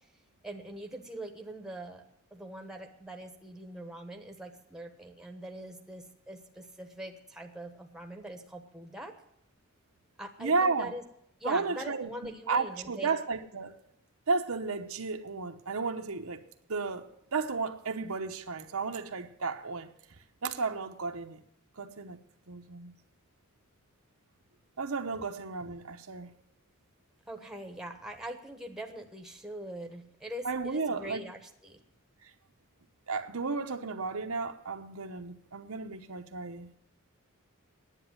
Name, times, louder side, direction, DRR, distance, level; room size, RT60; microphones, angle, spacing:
voice 1, 0.4-2.0 2.3-9.1 10.2-11.0 11.4-13.2 27.3-31.8, right 1 dB, 5° right, 1.2 m, -43 dB
voice 2, 10.4-10.9 11.4-12.1 12.5-13.8 14.3-16.4 16.7-19.9 20.4-21.4 21.8-22.9 24.8-26.3 30.4-31.2 32.2-32.3 33.1-36.7, right 4 dB, 70° right, 0.9 m, -33 dB
10.0 x 8.7 x 9.4 m
head